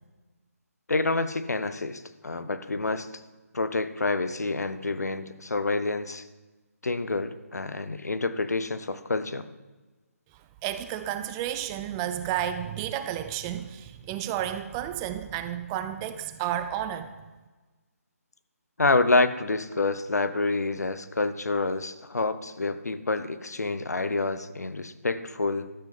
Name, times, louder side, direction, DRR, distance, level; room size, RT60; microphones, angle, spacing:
voice 1, 0.9-3.1 3.5-6.2 6.8-9.5 18.8-25.7, left 3 dB, 85° left, 12 dB, 0.8 m, -28 dB
voice 2, 10.6-17.1, right 11 dB, 15° right, 10 dB, 0.4 m, -31 dB
13.0 x 7.9 x 5.6 m, 1.3 s
figure-of-eight pair, 155°, 9 cm